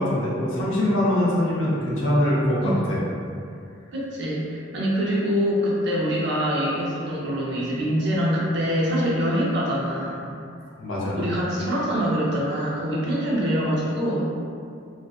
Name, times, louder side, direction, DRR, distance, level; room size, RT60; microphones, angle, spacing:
voice 1, 0.0-3.0 10.8-11.2, left 1 dB, 75° left, -7 dB, 0.7 m, -23 dB
voice 2, 3.9-10.3 11.1-14.2, equal, 55° right, -6 dB, 0.6 m, -24 dB
2.5 x 2.4 x 2.3 m, 2.4 s
head